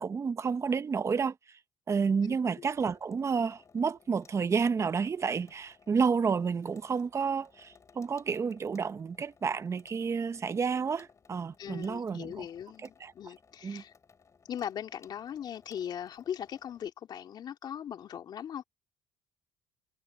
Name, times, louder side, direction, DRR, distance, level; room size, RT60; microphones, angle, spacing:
voice 1, 0.0-1.6 1.9-12.4 13.0-13.1 13.6-13.8, right 5 dB, 35° right, 1.1 m, -30 dB
voice 2, 2.2-2.7 11.6-13.9 14.5-18.6, left 9 dB, 55° left, 3.0 m, -39 dB
Water tap faucet / Sink (filling or washing), 2.6-16.9, left 5 dB, 35° left, 7.3 m, -62 dB
supercardioid pair, 80°, 9 cm